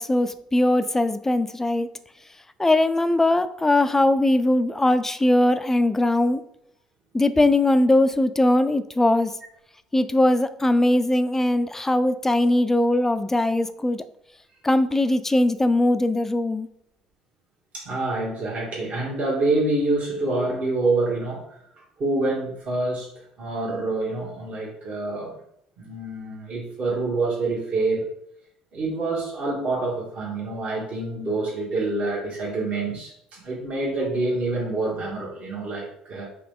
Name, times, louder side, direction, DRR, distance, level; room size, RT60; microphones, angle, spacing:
voice 1, 0.0-1.9 2.6-6.4 7.1-9.3 9.9-14.0 14.6-16.7, left 1 dB, 15° left, 12 dB, 0.4 m, -20 dB
voice 2, 17.7-25.4 25.8-28.1 28.7-36.3, right 2 dB, 45° right, -5 dB, 1.4 m, -27 dB
4.7 x 3.0 x 3.6 m, 0.74 s
hypercardioid pair, 60°, 3 cm